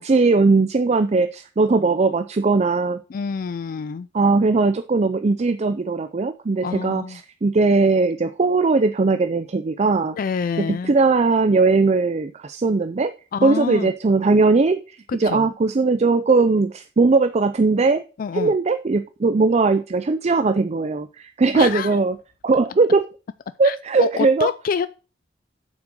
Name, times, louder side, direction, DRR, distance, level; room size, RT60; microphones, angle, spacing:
voice 1, 0.0-3.0 4.1-7.0 7.4-10.2 10.9-13.1 13.4-18.0 18.3-22.1 22.4-23.0 23.6-24.5, right 3 dB, 35° right, 0.4 m, -19 dB
voice 2, 3.1-4.1 6.6-7.2 10.2-10.9 13.3-13.9 15.1-15.5 18.2-18.6 21.5-22.0 23.6-24.9, left 6 dB, 50° left, 0.3 m, -27 dB
7.6 x 6.1 x 6.2 m
head